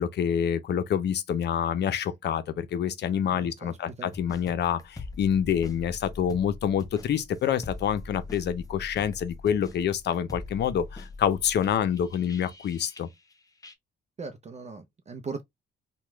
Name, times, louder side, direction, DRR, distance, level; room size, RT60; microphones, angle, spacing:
voice 1, 0.0-13.1, left 8 dB, 60° left, 0.6 m, -27 dB
voice 2, 3.3-4.1 14.2-15.4, right 4 dB, 35° right, 0.6 m, -39 dB
sound 1, 4.1-13.3 13.6-13.7, left 3 dB, 20° left, 0.7 m, -43 dB
3.0 x 2.3 x 3.3 m
cardioid pair, 90°, 20 cm